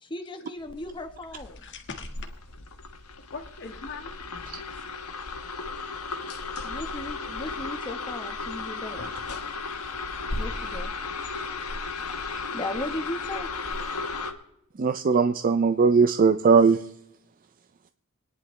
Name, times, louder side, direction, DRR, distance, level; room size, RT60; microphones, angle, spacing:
voice 1, 0.0-1.6 6.6-9.1 10.4-10.9 12.1-13.5, left 1 dB, 20° left, 6 dB, 1.2 m, -36 dB
sound 1, 0.6-14.3, left 4 dB, 85° left, 1.3 m, -35 dB
voice 2, 1.6-2.3 3.3-4.7 5.9-6.0, left 4 dB, 55° left, 4 dB, 1.6 m, -41 dB
voice 3, 14.8-16.8, right 5 dB, 40° right, 9 dB, 0.4 m, -20 dB
24.5 x 9.9 x 3.2 m, 0.81 s
head